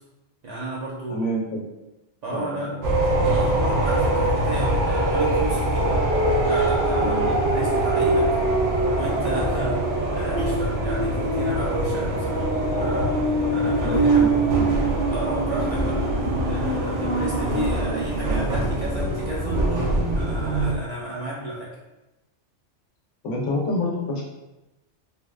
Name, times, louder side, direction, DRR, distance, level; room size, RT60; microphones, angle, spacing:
voice 1, 0.4-1.3 2.2-2.8 3.2-5.9 6.4-8.3 8.9-12.5 12.8-14.3 15.1-16.0 16.5-21.7, right 1 dB, 55° right, -6 dB, 0.4 m, -32 dB
voice 2, 1.1-1.7 2.3-2.8 7.0-7.3 13.6-14.7 23.2-24.2, left 1 dB, 90° left, -2 dB, 1.0 m, -28 dB
sound 1, 2.8-20.7, right 2 dB, 90° right, 0.9 m, -22 dB
3.3 x 2.1 x 2.2 m, 1.0 s
omnidirectional pair, 1.2 m